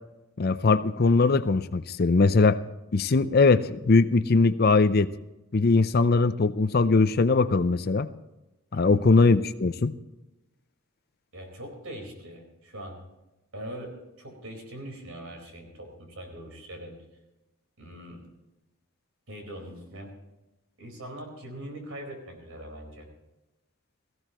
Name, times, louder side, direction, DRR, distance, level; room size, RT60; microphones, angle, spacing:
voice 1, 0.4-2.6 2.9-5.1 5.5-8.1 8.7-9.9, left 3 dB, 45° left, 13 dB, 0.5 m, -21 dB
voice 2, 11.3-13.0 13.5-16.9 17.8-18.2 19.3-20.1 20.8-23.1, right 1 dB, 75° right, 3 dB, 4.4 m, -41 dB
18.5 x 15.5 x 3.0 m, 1.0 s
head